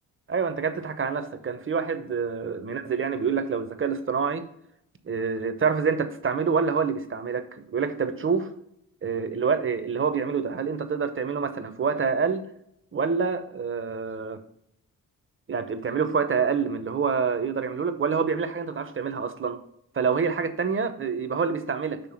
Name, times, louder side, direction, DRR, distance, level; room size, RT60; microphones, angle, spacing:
voice 1, 0.3-4.5 5.0-8.5 9.0-12.4 12.9-14.4 15.5-19.6 19.9-22.1, right 5 dB, 35° right, 9 dB, 0.9 m, -27 dB
6.9 x 3.3 x 5.8 m, 0.76 s
cardioid pair, 65°, 35 cm